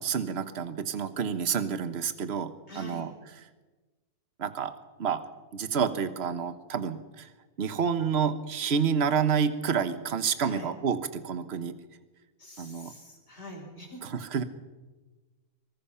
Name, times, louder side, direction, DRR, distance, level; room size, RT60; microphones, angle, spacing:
voice 1, 0.0-3.1 4.4-4.7 5.0-5.2 5.5-7.3 7.6-11.8 12.6-12.9 14.0-14.4, right 6 dB, 45° right, 11 dB, 1.3 m, -29 dB
voice 2, 2.7-3.1 10.4-10.7 12.4-14.0, equal, 45° left, 0 dB, 5.2 m, -44 dB
23.0 x 20.5 x 5.7 m, 1.2 s
omnidirectional pair, 1.6 m